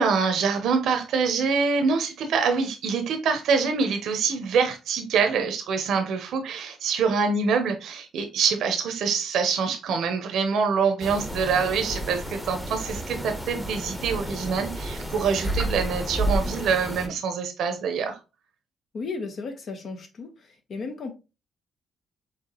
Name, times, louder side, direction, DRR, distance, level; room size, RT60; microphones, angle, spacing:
voice 1, 0.0-18.2, right 5 dB, 75° right, 0.8 m, -25 dB
sound 1, 11.0-17.1, right 1 dB, 10° left, 1.1 m, -31 dB
voice 2, 18.9-21.1, left 4 dB, 55° left, 1.2 m, -35 dB
4.8 x 3.1 x 3.0 m
cardioid pair, 90°, 0 cm